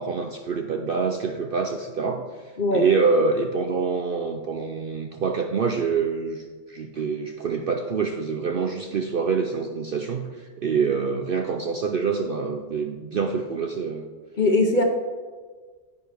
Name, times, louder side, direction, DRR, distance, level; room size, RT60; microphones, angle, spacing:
voice 1, 0.0-2.2 2.7-10.3 10.6-14.1, right 5 dB, 60° right, 4 dB, 0.6 m, -26 dB
voice 2, 14.4-14.8, left 2 dB, 45° left, 4 dB, 0.8 m, -20 dB
9.7 x 9.1 x 3.4 m, 1.5 s
omnidirectional pair, 1.4 m